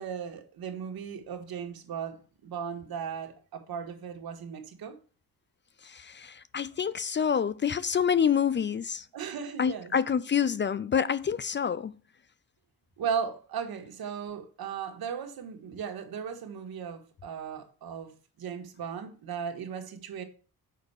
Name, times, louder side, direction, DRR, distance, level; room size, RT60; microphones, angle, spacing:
voice 1, 0.0-5.0 9.1-9.9 13.0-20.2, right 7 dB, 80° right, 1.7 m, -36 dB
voice 2, 5.8-9.0 9.6-12.0, left 7 dB, 30° left, 0.4 m, -27 dB
6.6 x 5.4 x 7.0 m
cardioid pair, 100°, 36 cm